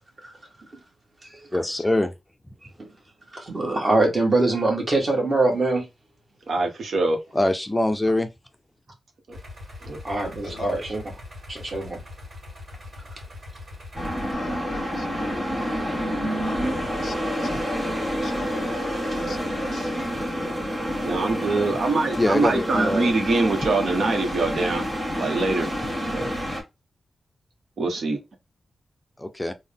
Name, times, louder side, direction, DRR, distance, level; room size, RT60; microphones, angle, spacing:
voice 1, 1.5-2.1 7.3-8.3 22.2-23.1 29.2-29.5, left 1 dB, 15° left, 0.4 m, -23 dB
voice 2, 3.3-5.9 10.0-11.0 11.5-12.0, right 2 dB, 40° right, 1.4 m, -23 dB
voice 3, 6.5-7.2 9.3-9.4 9.9-10.0 21.0-24.9 25.1-25.7 26.1-26.3 27.8-28.2, right 3 dB, 75° right, 0.9 m, -24 dB
sound 1, 9.3-14.3, left 2 dB, 60° right, 1.6 m, -41 dB
sound 2, 13.9-26.6, equal, 25° right, 1.7 m, -28 dB
voice 4, 14.3-15.1 16.3-17.7 18.0-20.6, left 5 dB, 75° left, 0.5 m, -42 dB
3.6 x 2.1 x 3.4 m
wide cardioid pair, 100°, 0 cm